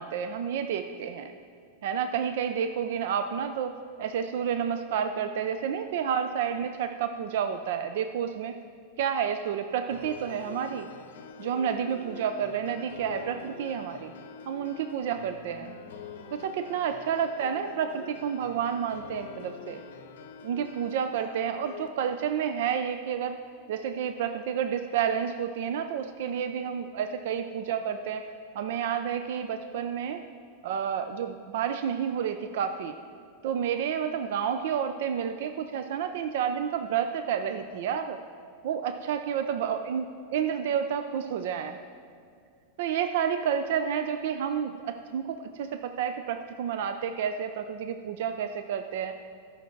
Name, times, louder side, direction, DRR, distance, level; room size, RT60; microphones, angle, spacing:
voice 1, 0.0-1.3 1.8-3.7 4.0-8.5 9.0-10.9 11.4-14.1 14.5-15.8 16.3-19.8 20.4-23.4 23.7-28.3 28.5-30.2 30.6-33.0 33.4-38.2 38.6-40.0 40.3-41.8 42.8-49.1, right 8 dB, 70° right, 8 dB, 0.4 m, -30 dB
sound 1, 9.9-21.9, left 6 dB, 85° left, 0.7 m, -45 dB
12.5 x 5.8 x 4.6 m, 2.2 s
supercardioid pair, 140°, 0 cm